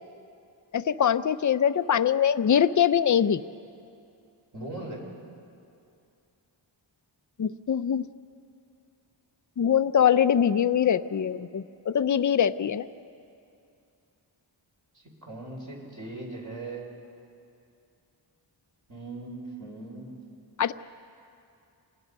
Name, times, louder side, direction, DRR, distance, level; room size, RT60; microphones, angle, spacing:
voice 1, 0.7-3.4 7.4-8.1 9.6-12.9 20.6-20.7, left 8 dB, 40° left, 13 dB, 0.6 m, -23 dB
voice 2, 4.5-5.0 14.9-16.9 18.9-20.2, right 2 dB, 40° right, -3 dB, 5.3 m, -39 dB
27.5 x 19.0 x 5.4 m, 2.6 s
wide cardioid pair, 80°, 46 cm